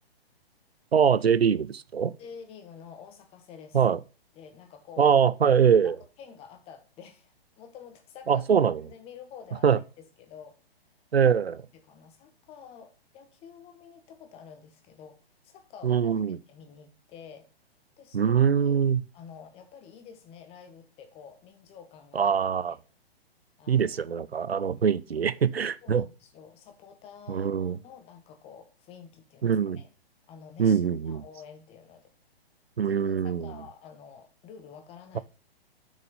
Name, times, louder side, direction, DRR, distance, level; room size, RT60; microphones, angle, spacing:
voice 1, 0.9-2.1 3.7-4.0 5.0-6.0 8.3-8.8 9.6-9.8 11.1-11.6 15.8-16.4 18.1-19.0 22.1-22.7 23.7-26.0 27.3-27.8 29.4-29.8 30.6-31.2 32.8-33.5, right 7 dB, 75° right, 0.6 m, -23 dB
voice 2, 2.2-4.0 4.3-5.1 6.2-10.6 11.7-17.5 18.0-18.8 19.1-22.3 22.7-22.8 23.6-24.2 24.7-24.9 25.8-29.9 30.3-32.1 32.8-33.0 33.2-35.2, left 7 dB, 20° left, 1.3 m, -49 dB
6.6 x 6.4 x 5.5 m
figure-of-eight pair, 125°, 31 cm